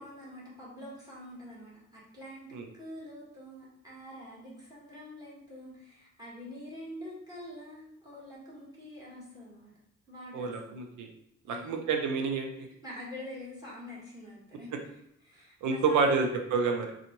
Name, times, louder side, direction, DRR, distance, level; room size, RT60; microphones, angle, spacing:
voice 1, 0.0-2.5 2.7-9.7 10.1-10.8 11.5-11.8 12.5-16.2, left 1 dB, 15° right, -6 dB, 1.5 m, -46 dB
voice 2, 10.3-11.1 11.5-12.5 15.6-16.9, right 4 dB, 80° right, 4 dB, 0.6 m, -28 dB
3.7 x 2.4 x 2.9 m, 0.78 s
cardioid pair, 90°, 30 cm